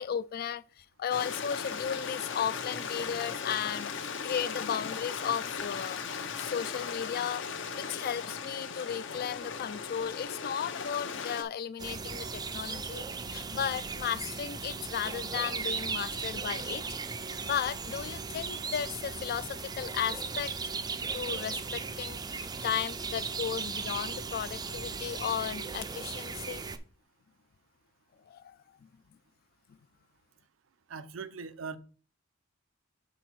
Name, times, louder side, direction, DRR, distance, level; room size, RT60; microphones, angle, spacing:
voice 1, 0.0-6.0 6.4-7.4 7.8-16.8 17.4-20.5 21.0-26.6 28.3-28.6, left 8 dB, 50° left, 0.3 m, -35 dB
Stream, 1.1-11.4, left 6 dB, 65° left, 0.7 m, -37 dB
sound 1, 11.8-26.8, right 5 dB, 20° right, 0.4 m, -37 dB
voice 2, 30.9-31.8, right 5 dB, 85° right, 0.6 m, -40 dB
6.0 x 4.0 x 4.6 m
head